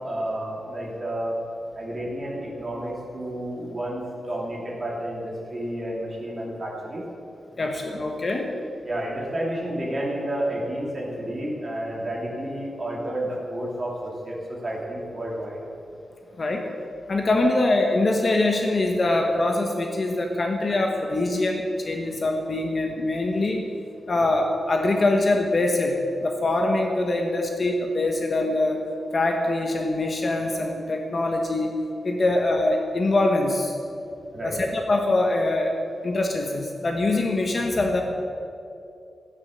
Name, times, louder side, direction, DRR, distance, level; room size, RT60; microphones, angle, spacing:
voice 1, 0.0-1.4 1.8-7.0 8.8-14.0 14.2-15.6 24.1-24.3 32.3-32.4 34.3-34.6, right 1 dB, 25° right, -4 dB, 3.0 m, -31 dB
voice 2, 7.6-8.5 16.4-16.6 17.1-23.6 24.1-28.8 29.1-31.7 32.0-33.7 34.4-35.7 36.0-38.0, left 2 dB, 35° left, 2 dB, 1.1 m, -23 dB
14.5 x 9.7 x 6.5 m, 2.6 s
wide cardioid pair, 175°, 0 cm